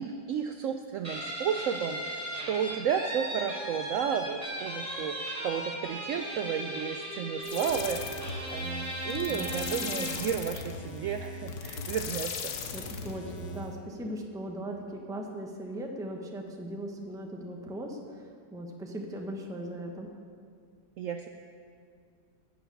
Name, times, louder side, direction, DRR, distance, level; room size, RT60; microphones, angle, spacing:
voice 1, 0.0-12.5 21.0-21.3, right 7 dB, 85° right, 6 dB, 0.6 m, -33 dB
Guitar, 1.0-10.3, right 1 dB, 20° right, 3.0 m, -37 dB
sound 1, 7.4-13.8, left 4 dB, 85° left, 1.6 m, -38 dB
voice 2, 9.3-9.6 10.0-10.1 12.7-20.1, right 1 dB, 5° right, 1 dB, 0.5 m, -39 dB
11.5 x 6.0 x 8.2 m, 2.2 s
omnidirectional pair, 1.9 m